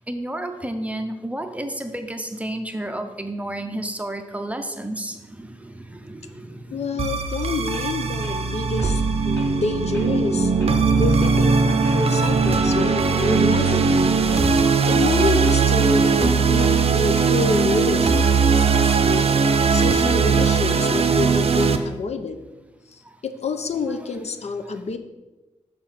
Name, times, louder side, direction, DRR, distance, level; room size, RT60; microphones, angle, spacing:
voice 1, 0.1-7.2 20.6-21.1 23.9-24.2, right 1 dB, 10° right, 6 dB, 0.6 m, -32 dB
voice 2, 6.7-10.5 11.0-14.0 14.9-19.3 19.7-22.4 22.9-25.0, left 3 dB, 60° left, 8 dB, 0.6 m, -28 dB
sound 1, 7.0-21.8, right 5 dB, 55° right, 0.6 m, -19 dB
sound 2, 7.7-7.9 8.2-8.3 8.8-8.9 9.3-9.5 9.9-10.1 10.6-10.8 11.2-11.4 11.8-12.0 12.5-12.8 13.1-13.3 13.7-13.8 14.3-14.4 14.8-15.0 15.4-15.6 16.0-16.1 16.6-16.7 17.1-17.3 17.7-17.8 18.2-18.3 18.7-18.9 19.3-19.4 19.8-19.9 20.3-20.8, equal, 20° left, 2.2 m, -42 dB
6.9 x 5.0 x 5.7 m, 1.1 s
wide cardioid pair, 165°, 12 cm